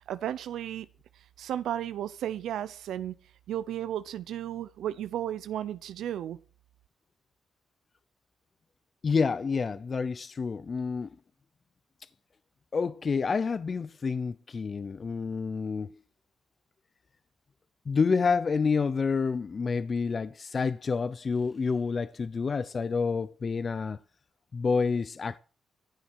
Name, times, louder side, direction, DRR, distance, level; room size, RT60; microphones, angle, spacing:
voice 1, 0.1-0.9 1.4-3.1 3.5-6.4, right 11 dB, 85° right, 0.7 m, -34 dB
voice 2, 9.0-11.1 12.7-16.0 17.9-24.0 24.5-25.4, left 5 dB, 45° left, 0.6 m, -28 dB
14.5 x 7.3 x 6.1 m
cardioid pair, 85°, 0 cm